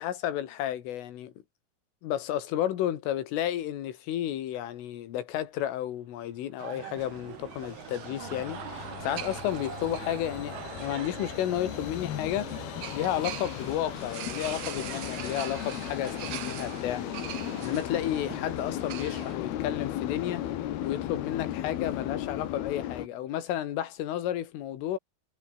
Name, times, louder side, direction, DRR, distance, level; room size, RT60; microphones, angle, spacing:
voice 1, 0.0-1.3 2.0-12.5 12.9-20.5 20.8-25.0, left 12 dB, 90° left, 4.8 m, -32 dB
sound 1, 6.6-19.4, right 13 dB, 80° right, 4.1 m, -42 dB
sound 2, 6.7-11.1, right 7 dB, 60° right, 1.3 m, -46 dB
sound 3, 7.0-23.1, left 12 dB, 65° left, 3.1 m, -36 dB
omnidirectional pair, 5.6 m